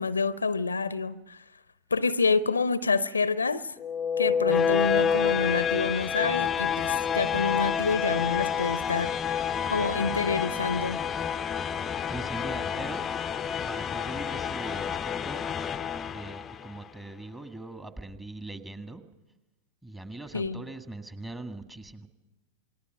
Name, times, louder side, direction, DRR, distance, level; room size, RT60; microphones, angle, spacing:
voice 1, 0.0-1.4 1.9-3.7 4.2-9.4 9.7-11.0 20.3-20.6, left 4 dB, 75° left, 0.7 m, -28 dB
sound 1, 3.8-16.8, left 7 dB, 20° left, 0.7 m, -29 dB
voice 2, 12.1-13.1 13.6-15.5 16.1-19.0 19.8-22.1, right 2 dB, 10° right, 1.9 m, -41 dB
28.0 x 20.0 x 6.3 m
figure-of-eight pair, 90°, 0 cm